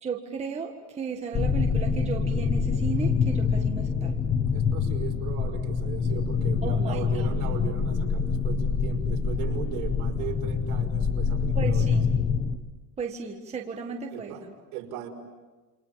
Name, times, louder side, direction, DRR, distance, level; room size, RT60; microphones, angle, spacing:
voice 1, 0.0-4.2 6.6-7.3 11.5-12.1 13.0-14.5, right 5 dB, 15° right, 2 dB, 1.5 m, -35 dB
sound 1, 1.3-12.6, left 5 dB, 15° left, 0.9 m, -26 dB
voice 2, 4.5-11.9 14.1-14.5 14.7-15.1, right 9 dB, 65° right, 1 dB, 5.6 m, -38 dB
28.5 x 27.0 x 7.5 m, 1.3 s
cardioid pair, 170°, 45 cm